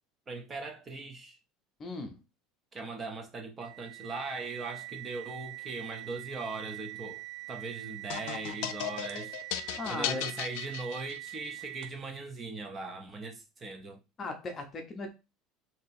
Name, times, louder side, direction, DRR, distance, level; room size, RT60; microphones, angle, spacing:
voice 1, 0.3-1.4 2.7-9.4 9.9-14.0, right 3 dB, 20° right, 0.6 m, -40 dB
voice 2, 1.8-2.2 9.8-10.2 14.2-15.1, left 2 dB, 20° left, 0.6 m, -37 dB
sound 1, 3.6-12.1, right 20 dB, 65° right, 0.4 m, -44 dB
sound 2, 8.1-11.5, left 12 dB, 75° left, 0.3 m, -36 dB
2.8 x 2.7 x 4.1 m
cardioid pair, 170°, 0 cm